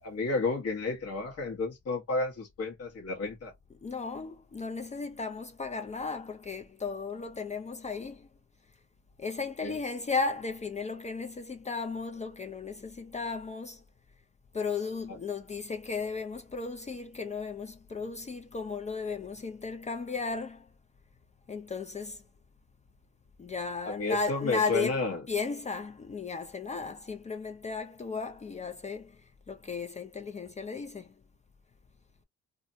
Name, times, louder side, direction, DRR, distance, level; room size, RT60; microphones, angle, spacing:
voice 1, 0.0-3.5 9.6-9.8 15.1-15.2 23.9-25.2, left 3 dB, 55° left, 1.1 m, -31 dB
voice 2, 3.8-8.3 9.2-13.8 14.5-20.7 21.5-22.2 23.4-25.0 25.3-31.1, left 4 dB, 25° left, 0.4 m, -35 dB
2.5 x 2.1 x 2.6 m
cardioid pair, 90°, 30 cm